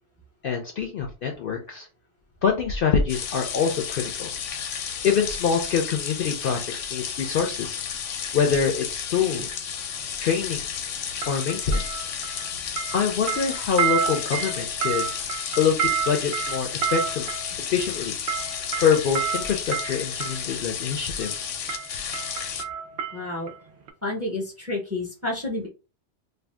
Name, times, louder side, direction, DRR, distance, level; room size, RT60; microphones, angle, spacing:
voice 1, 0.4-1.9 2.4-4.3 5.0-7.8 8.3-9.7 10.2-10.6 11.3-12.0 12.9-15.3 15.6-17.3 17.6-18.2 18.8-21.5, left 6 dB, 60° left, 3 dB, 0.6 m, -25 dB
sound 1, 3.1-22.6, left 8 dB, 80° left, 0.9 m, -32 dB
sound 2, 9.3-9.5 11.2-12.5 12.8-20.5 21.2-21.4 21.7-23.6 23.9-24.0, right 8 dB, 65° right, 0.8 m, -30 dB
voice 2, 23.1-23.5 24.0-25.7, left 2 dB, 15° right, -1 dB, 0.6 m, -30 dB
2.6 x 2.2 x 3.3 m, 0.33 s
omnidirectional pair, 1.3 m